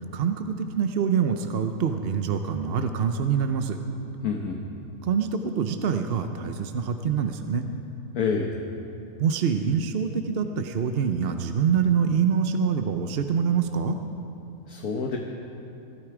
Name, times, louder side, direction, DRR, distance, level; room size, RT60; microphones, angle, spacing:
voice 1, 0.0-3.8 5.0-7.6 9.2-14.0, right 7 dB, 50° right, 7 dB, 0.7 m, -25 dB
voice 2, 4.2-4.6 8.1-8.5 14.7-15.2, left 5 dB, 70° left, 2 dB, 1.5 m, -27 dB
22.0 x 12.5 x 4.9 m, 2.7 s
omnidirectional pair, 1.6 m